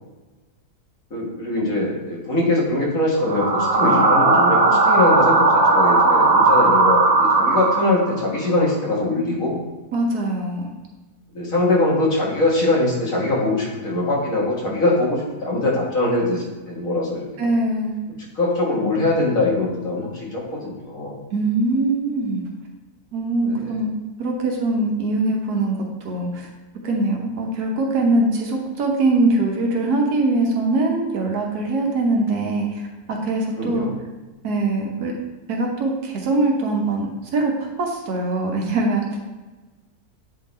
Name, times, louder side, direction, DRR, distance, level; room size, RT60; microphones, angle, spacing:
voice 1, 1.1-9.6 11.3-17.5 18.4-21.2 23.4-23.7 33.6-33.9, left 2 dB, 60° left, -4 dB, 2.0 m, -22 dB
sound 1, 3.2-8.3, right 3 dB, 50° right, 0.4 m, -17 dB
voice 2, 9.9-10.7 17.4-18.0 21.3-22.4 23.1-23.9 24.2-26.5 26.8-33.9 34.4-35.1 35.5-39.2, right 2 dB, 80° right, 0 dB, 1.5 m, -22 dB
8.6 x 3.8 x 4.1 m, 1.2 s
omnidirectional pair, 1.6 m